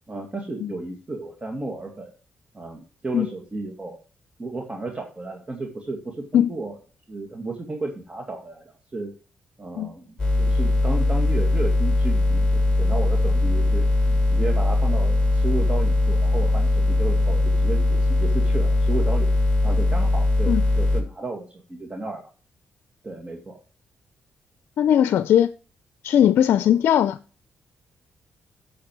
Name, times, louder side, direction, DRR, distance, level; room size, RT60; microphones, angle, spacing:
voice 1, 0.1-2.1 2.5-4.0 4.4-6.8 7.1-8.6 8.9-9.1 9.6-19.3 19.6-22.2 23.0-23.6, right 2 dB, 30° right, 2.1 m, -33 dB
sound 1, 10.2-21.0, left 2 dB, 10° left, 5.5 m, -20 dB
voice 2, 24.8-25.5 26.0-27.2, left 10 dB, 80° left, 0.4 m, -19 dB
8.8 x 6.8 x 4.7 m
cardioid pair, 65°, 4 cm